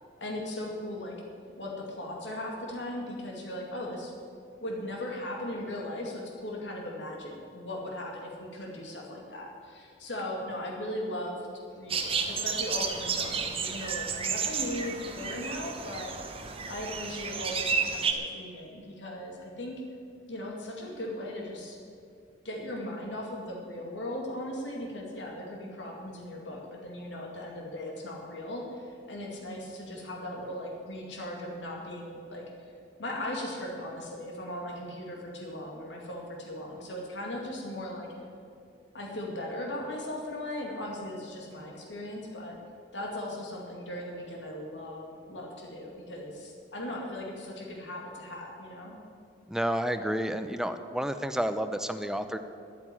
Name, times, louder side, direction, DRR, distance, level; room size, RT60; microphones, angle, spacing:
voice 1, 0.2-1.2 1.6-4.1 4.6-11.4 11.7-19.8 20.3-21.8 22.4-32.5 33.0-38.1 38.9-42.6 42.9-49.0, left 1 dB, 80° left, -1 dB, 2.3 m, -38 dB
sound 1, 11.9-18.1, right 5 dB, 30° right, 1.1 m, -32 dB
voice 2, 49.5-52.4, equal, 5° right, 9 dB, 0.6 m, -30 dB
11.0 x 8.9 x 9.9 m, 2.4 s
head